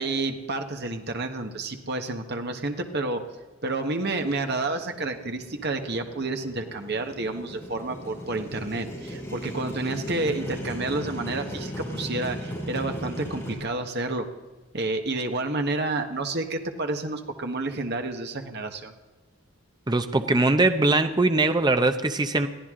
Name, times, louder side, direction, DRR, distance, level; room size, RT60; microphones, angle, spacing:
voice 1, 0.0-3.2 3.6-14.2 14.7-18.9, right 2 dB, 50° right, 5 dB, 1.5 m, -30 dB
Motorcycle, 4.7-13.6, equal, 10° left, 5.4 m, -37 dB
voice 2, 19.9-22.5, right 2 dB, 20° right, 8 dB, 0.7 m, -21 dB
22.0 x 14.5 x 3.8 m, 1.2 s
head